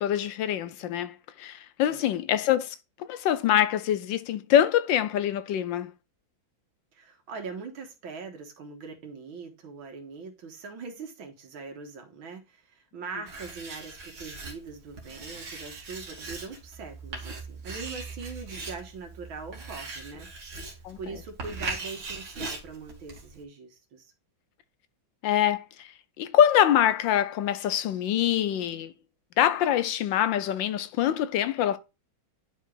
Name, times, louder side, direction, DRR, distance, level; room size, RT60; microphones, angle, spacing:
voice 1, 0.0-5.9 20.8-21.0 25.2-25.9 26.2-28.9 29.4-31.8, left 10 dB, 75° left, 1.3 m, -24 dB
voice 2, 6.9-20.7 21.0-24.1, right 4 dB, 80° right, 2.3 m, -42 dB
Writing, 13.3-23.4, right 3 dB, 65° right, 2.3 m, -40 dB
11.0 x 4.8 x 2.5 m
omnidirectional pair, 2.1 m